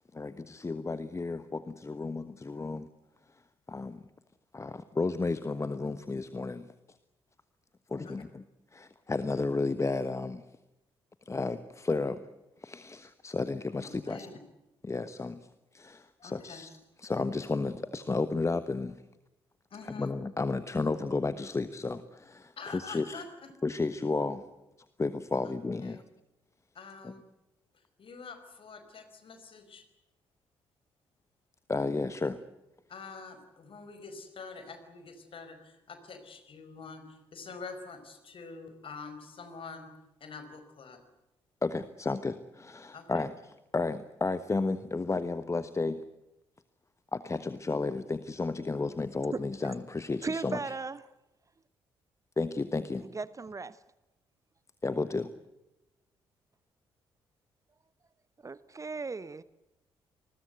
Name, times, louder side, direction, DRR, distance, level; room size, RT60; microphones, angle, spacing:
voice 1, 0.1-2.9 3.7-4.0 4.5-6.7 7.9-8.4 8.7-10.4 11.3-12.2 12.6-14.3 14.8-15.4 15.7-16.7 17.0-18.9 19.8-23.2 23.6-24.5 25.0-26.0 27.0-27.1 31.7-32.4 41.6-43.3 43.7-46.0 47.1-50.7 52.4-53.1 54.8-55.3, left 3 dB, 25° left, 13 dB, 1.3 m, -32 dB
voice 2, 13.8-14.3 16.2-16.6 19.7-20.1 22.6-23.5 25.8-26.0 26.7-27.2 28.0-29.8 32.9-39.9 40.2-41.0 42.9-43.2, left 4 dB, 45° left, 8 dB, 5.0 m, -46 dB
voice 3, 49.3-49.7 50.2-51.0 53.0-53.8 58.4-59.4, right 4 dB, 25° right, 18 dB, 0.9 m, -37 dB
27.5 x 21.0 x 7.9 m, 0.96 s
figure-of-eight pair, 40°, 13 cm